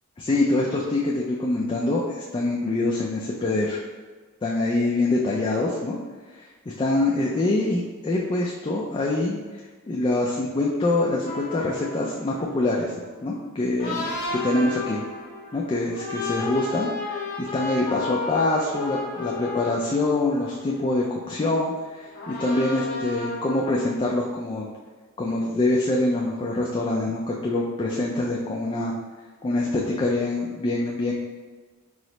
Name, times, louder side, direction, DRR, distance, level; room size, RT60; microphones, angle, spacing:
voice 1, 0.2-3.8 4.4-6.0 6.4-6.5 6.8-9.6 9.9-12.9 13.2-15.0 15.5-24.7 25.2-28.9 29.4-31.1, left 2 dB, 25° left, -3 dB, 0.3 m, -25 dB
sound 1, 11.3-21.6 22.1-24.1, left 3 dB, 40° left, 1.0 m, -33 dB
4.7 x 2.0 x 4.0 m, 1.4 s
head